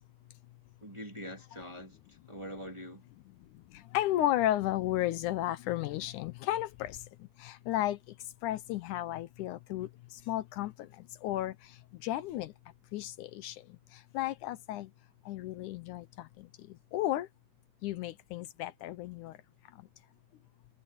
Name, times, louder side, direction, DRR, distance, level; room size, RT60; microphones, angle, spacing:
voice 1, 0.8-3.0, equal, 10° right, 2.1 m, -44 dB
voice 2, 3.9-7.0 7.4-8.0 8.4-9.9 10.3-10.9 11.2-11.6 12.0-12.5 12.9-13.6 14.1-14.9 15.3-16.5 16.9-17.3 17.8-19.3, left 14 dB, 80° left, 2.2 m, -33 dB
omnidirectional pair, 3.6 m